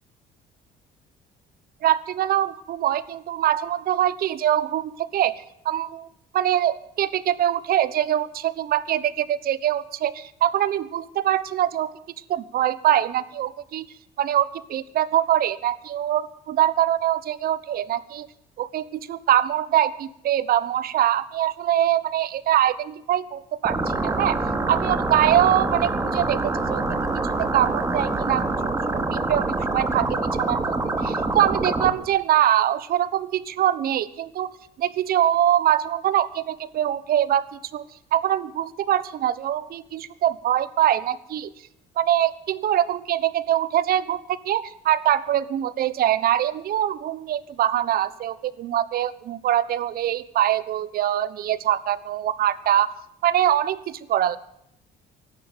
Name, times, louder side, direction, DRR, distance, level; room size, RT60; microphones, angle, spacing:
voice 1, 1.8-6.1 6.3-11.9 12.3-13.9 14.2-18.3 18.6-24.4 24.7-26.8 27.4-28.4 28.7-34.5 34.8-37.8 38.1-41.5 42.0-52.9 53.2-54.4, right 11 dB, 60° right, 17 dB, 1.1 m, -23 dB
sound 1, 23.6-31.9, right 2 dB, 15° right, 2.5 m, -25 dB
16.0 x 12.0 x 7.4 m, 0.78 s
cardioid pair, 110°, 17 cm